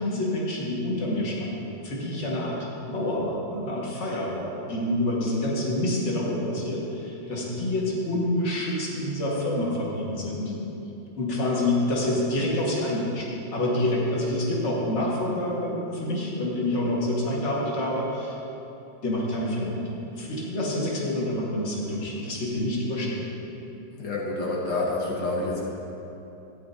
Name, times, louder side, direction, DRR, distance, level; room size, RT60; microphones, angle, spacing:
voice 1, 0.0-2.6 2.9-10.5 11.2-18.4 19.0-19.8 20.1-23.3, left 1 dB, 40° left, -5 dB, 1.8 m, -27 dB
voice 2, 24.0-25.6, left 2 dB, 75° left, -3 dB, 1.8 m, -28 dB
13.5 x 9.4 x 2.7 m, 2.9 s
omnidirectional pair, 2.0 m